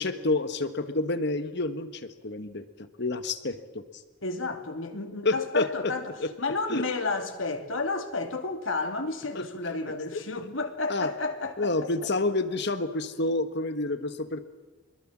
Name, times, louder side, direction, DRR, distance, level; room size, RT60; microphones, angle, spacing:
voice 1, 0.0-3.8 5.2-5.6 6.2-6.3 6.7-6.9 9.3-9.4 10.1-10.2 10.9-11.1 11.6-14.4, left 2 dB, 60° left, 1.5 m, -29 dB
voice 2, 4.2-11.9, left 3 dB, 80° left, 2.7 m, -31 dB
25.0 x 21.5 x 7.5 m
head